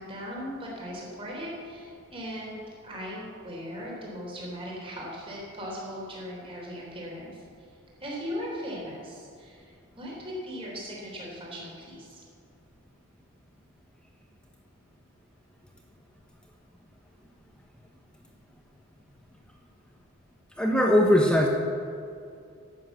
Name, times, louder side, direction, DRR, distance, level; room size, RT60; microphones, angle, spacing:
voice 1, 0.0-2.6 2.8-7.4 8.0-12.2, equal, 25° right, -3 dB, 3.4 m, -38 dB
voice 2, 20.6-21.5, left 1 dB, 5° left, 0 dB, 0.9 m, -20 dB
12.0 x 7.4 x 8.0 m, 2.4 s
head